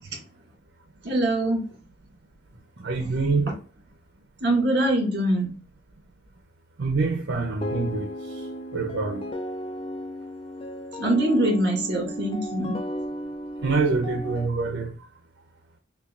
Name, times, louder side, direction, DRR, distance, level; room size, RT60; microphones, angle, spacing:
voice 1, 1.0-1.7 3.0-3.1 4.4-5.5 11.0-12.8, right 1 dB, 55° right, 1.9 m, -23 dB
voice 2, 2.8-3.5 6.8-9.3 13.6-15.0, right 4 dB, 75° right, 0.6 m, -26 dB
sound 1, 7.6-14.5, equal, 30° left, 0.3 m, -34 dB
5.5 x 2.3 x 2.3 m
head